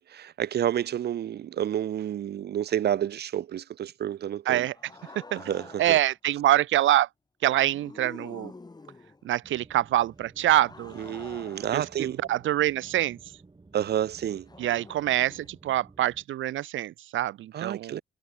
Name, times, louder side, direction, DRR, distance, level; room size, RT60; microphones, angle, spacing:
voice 1, 0.0-4.7 5.3-6.0 11.0-12.2 13.7-14.5 17.5-18.0, right 10 dB, 55° right, 0.7 m, -30 dB
sound 1, 4.7-6.1 7.6-9.3 10.4-13.1 14.5-15.5, left 3 dB, 20° left, 2.8 m, -48 dB
voice 2, 5.8-7.1 7.4-8.5 9.2-11.0 11.7-13.2 14.6-18.0, right 13 dB, 75° right, 1.4 m, -25 dB
sound 2, 9.4-16.2, right 3 dB, 25° right, 5.4 m, -54 dB
cardioid pair, 90°, 20 cm